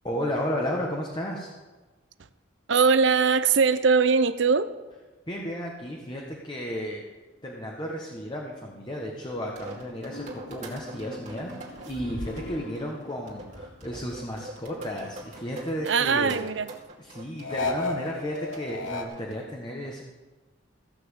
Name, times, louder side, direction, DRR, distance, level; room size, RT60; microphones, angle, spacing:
voice 1, 0.0-1.5 5.3-7.1 7.4-16.4 17.0-20.0, equal, 25° left, -1 dB, 1.3 m, -33 dB
voice 2, 2.7-4.7 15.8-16.7, right 5 dB, 65° right, 13 dB, 0.7 m, -21 dB
sound 1, 9.3-19.3, right 1 dB, 40° right, 2.4 m, -43 dB
sound 2, 10.1-14.0 14.3-15.9 17.4-19.1, left 3 dB, 80° left, 1.2 m, -37 dB
15.0 x 6.0 x 8.2 m, 1.2 s
head